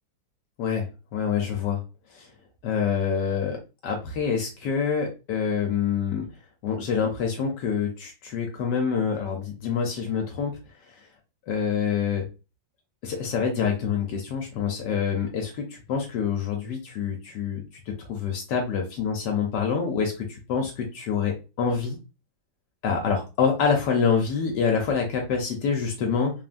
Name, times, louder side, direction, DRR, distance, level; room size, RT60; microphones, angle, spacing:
voice 1, 1.1-1.8 2.1-2.3 2.6-3.6 3.8-6.2 6.6-10.5 11.5-12.3 13.0-22.0 22.8-26.3, left 6 dB, 70° left, 1 dB, 1.2 m, -26 dB
3.5 x 2.1 x 2.4 m, 0.30 s
omnidirectional pair, 2.1 m